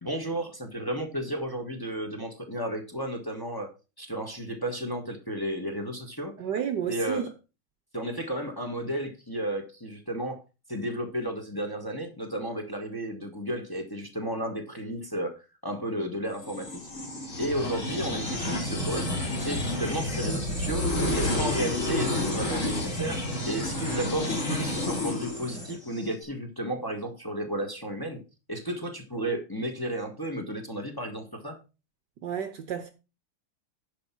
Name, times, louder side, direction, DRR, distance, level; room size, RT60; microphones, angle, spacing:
voice 1, 0.0-3.7 4.0-6.3 6.9-7.3 7.9-10.4 10.7-15.3 15.6-16.9 17.4-19.1 19.4-20.9 21.1-28.2 28.5-31.6, right 1 dB, 10° left, 1.6 m, -33 dB
voice 2, 6.4-7.3 32.2-32.9, right 8 dB, 60° right, 1.4 m, -31 dB
sound 1, 16.4-26.1, left 1 dB, 35° left, 3.5 m, -30 dB
10.5 x 5.7 x 6.0 m
omnidirectional pair, 2.3 m